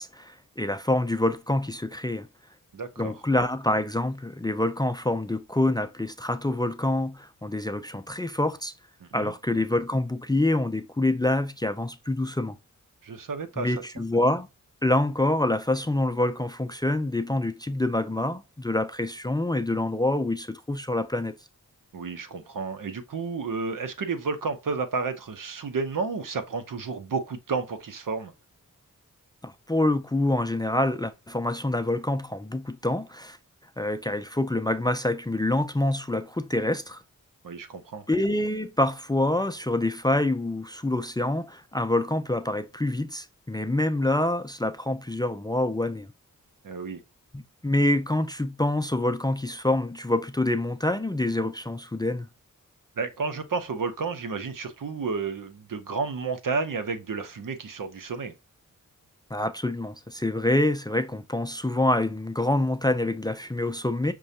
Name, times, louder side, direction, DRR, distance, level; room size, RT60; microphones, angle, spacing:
voice 1, 0.0-2.3 3.0-8.7 9.1-12.6 13.6-14.5 14.8-21.3 29.4-33.4 33.8-37.0 38.1-46.1 47.3-52.3 59.3-64.1, left 1 dB, 15° left, 0.4 m, -26 dB
voice 2, 2.7-3.1 9.0-9.3 13.0-13.7 21.9-28.3 37.4-38.0 46.6-47.0 53.0-58.3, right 4 dB, 75° right, 0.8 m, -31 dB
6.1 x 2.2 x 2.7 m
cardioid pair, 55°, 33 cm